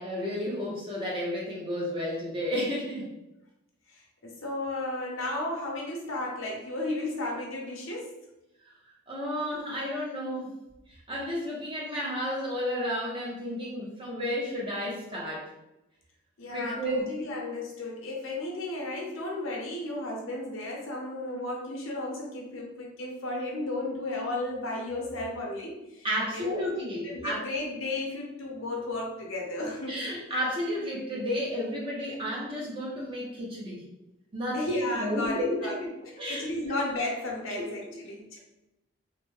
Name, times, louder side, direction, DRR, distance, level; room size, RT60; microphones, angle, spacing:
voice 1, 0.0-3.1 9.1-10.5 10.9-15.5 16.4-17.0 26.0-27.4 29.9-33.8 34.3-34.6 34.9-35.8 36.2-36.4 37.5-38.1, equal, 25° right, -4 dB, 0.7 m, -32 dB
voice 2, 4.2-8.1 16.4-26.1 26.3-30.0 34.5-35.8 36.3-38.4, left 2 dB, 75° left, -1 dB, 0.7 m, -34 dB
3.2 x 2.1 x 3.1 m, 0.92 s
head